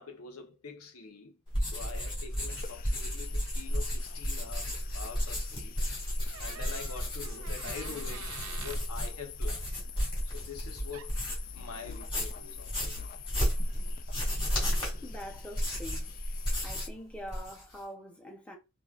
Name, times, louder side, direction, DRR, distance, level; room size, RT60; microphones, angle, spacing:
voice 1, 0.0-5.8 6.4-9.7 9.9-11.2 11.5-13.2 13.6-13.7, left 5 dB, 85° left, 0.9 m, -45 dB
sound 1, 1.5-11.5 11.9-17.0 17.2-17.8, equal, 25° left, 2.1 m, -33 dB
sound 2, 2.5-16.9, left 7 dB, 40° left, 0.3 m, -47 dB
Door, 6.3-8.9 10.6-10.7 10.9-11.3, right 8 dB, 85° right, 0.5 m, -47 dB
voice 2, 15.0-16.1 16.6-18.6, equal, 5° left, 0.8 m, -44 dB
4.8 x 2.6 x 2.4 m
head